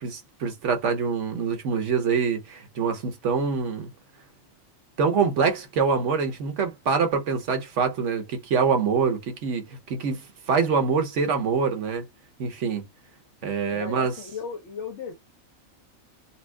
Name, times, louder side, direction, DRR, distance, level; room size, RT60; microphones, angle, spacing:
voice 1, 0.0-3.9 5.0-12.0 12.4-12.8 13.4-14.1, right 5 dB, 60° right, 1.2 m, -25 dB
voice 2, 13.7-15.1, left 6 dB, 65° left, 1.0 m, -36 dB
4.4 x 2.0 x 2.2 m
omnidirectional pair, 1.4 m